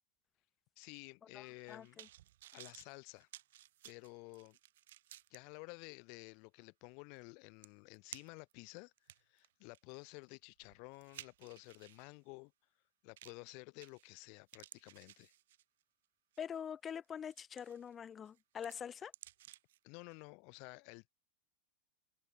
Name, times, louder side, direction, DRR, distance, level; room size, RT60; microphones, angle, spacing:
voice 1, 0.8-2.0 2.5-3.3 3.8-4.6 5.3-8.9 9.3-12.5 13.0-15.3 19.8-21.1, left 35 dB, 45° left, 5.5 m, -53 dB
voice 2, 1.3-2.1 16.4-19.1, left 8 dB, 25° left, 2.3 m, -45 dB
sound 1, 1.5-5.4 5.9-6.0 7.2-7.3 7.6-8.5 9.0-12.1 13.2-13.5 13.8-14.2 14.5-15.8 16.3-16.6 17.0-17.9 18.3-19.8 20.1-20.2, right 14 dB, 55° right, 4.2 m, -56 dB
figure-of-eight pair, 90°, 0 cm